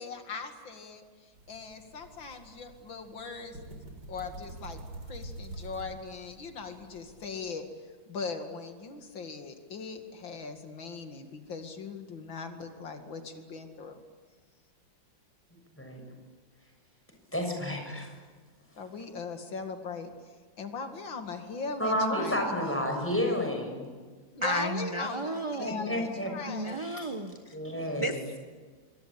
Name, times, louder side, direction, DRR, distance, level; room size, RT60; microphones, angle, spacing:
voice 1, 0.0-3.6 4.1-4.8 5.0-7.6 8.1-14.0 18.8-22.7 24.3-27.0, left 4 dB, 85° left, 6 dB, 3.0 m, -40 dB
sound 1, 1.3-7.3, right 2 dB, 65° right, 4.8 m, -46 dB
voice 2, 17.3-18.1 21.8-23.9 25.6-26.3 26.8-27.1 27.5-28.1, left 1 dB, 5° left, 3 dB, 6.5 m, -30 dB
voice 3, 24.4-26.1 26.4-27.6 28.0-28.4, right 1 dB, 20° right, 6 dB, 1.2 m, -33 dB
27.0 x 24.5 x 8.7 m, 1.5 s
omnidirectional pair, 2.0 m